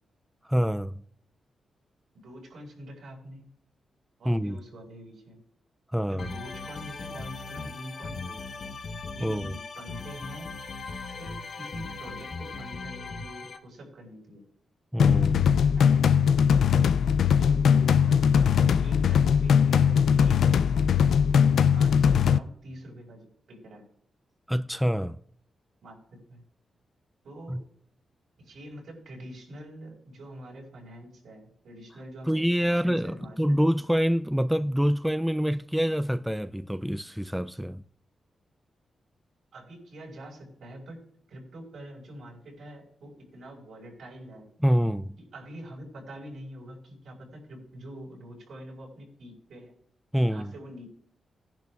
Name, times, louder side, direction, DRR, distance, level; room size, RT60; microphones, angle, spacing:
voice 1, 0.4-1.0 4.3-4.6 5.9-6.4 9.2-9.6 14.9-15.6 24.5-25.2 27.5-27.6 32.3-37.8 44.6-45.2 50.1-50.5, equal, ahead, 0.3 m, -26 dB
voice 2, 2.2-3.4 4.2-5.4 6.1-8.7 9.1-10.5 11.1-14.4 15.8-16.2 17.3-23.9 25.8-26.0 26.3-26.4 27.2-27.6 28.4-33.4 39.5-41.0 41.3-44.5 45.3-49.7 50.2-50.9, equal, 75° right, 5.0 m, -45 dB
sound 1, 6.2-13.6, left 4 dB, 60° left, 1.0 m, -39 dB
sound 2, 15.0-22.4, left 7 dB, 80° left, 0.3 m, -20 dB
17.5 x 10.5 x 2.4 m
cardioid pair, 100°, 0 cm